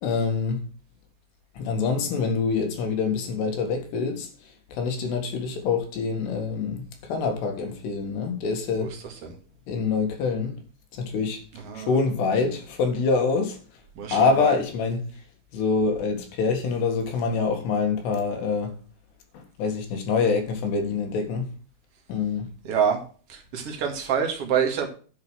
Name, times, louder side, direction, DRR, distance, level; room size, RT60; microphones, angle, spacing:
voice 1, 0.0-0.7 1.6-4.3 4.7-8.9 9.7-10.6 10.9-11.4 11.8-13.6 14.1-15.0 15.5-18.8 19.3-21.5 22.1-22.5, left 4 dB, 75° left, 3.9 m, -25 dB
voice 2, 8.8-9.4 11.5-12.0 14.0-14.6 22.6-23.0 23.3-24.9, right 7 dB, 45° right, 2.3 m, -27 dB
10.5 x 5.9 x 6.3 m
omnidirectional pair, 4.9 m